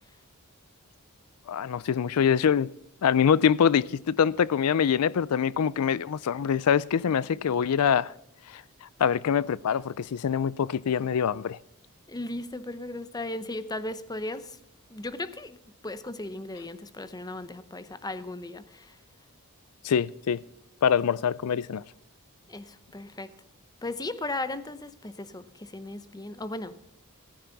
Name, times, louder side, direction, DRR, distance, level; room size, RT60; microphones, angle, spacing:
voice 1, 1.5-2.7 3.0-8.1 8.5-8.6 9.0-11.6 19.8-20.4 20.8-21.8, left 7 dB, 90° left, 0.4 m, -24 dB
voice 2, 12.1-14.6 14.9-15.6 15.8-18.9 22.5-23.3 23.8-26.8, left 2 dB, 15° left, 0.8 m, -36 dB
15.0 x 14.0 x 4.0 m
head